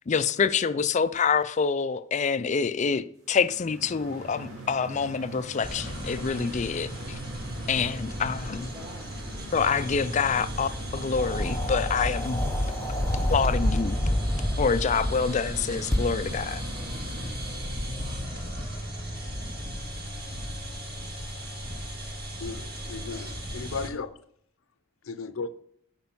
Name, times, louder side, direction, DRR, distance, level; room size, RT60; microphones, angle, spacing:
voice 1, 0.1-7.2 7.7-8.7 9.5-12.4 13.3-14.0 14.6-16.6, left 5 dB, 35° left, 0.4 m, -26 dB
sound 1, 3.2-17.8, right 1 dB, 70° right, 3.4 m, -43 dB
sound 2, 5.6-23.9, equal, 50° right, 2.0 m, -37 dB
voice 2, 8.4-9.2 16.3-17.6, left 1 dB, 25° right, 2.8 m, -50 dB
sound 3, 11.2-15.3 15.9-16.0, left 1 dB, 15° left, 0.9 m, -27 dB
voice 3, 22.4-24.1 25.0-25.5, left 4 dB, 80° left, 0.6 m, -35 dB
8.7 x 5.2 x 5.4 m
head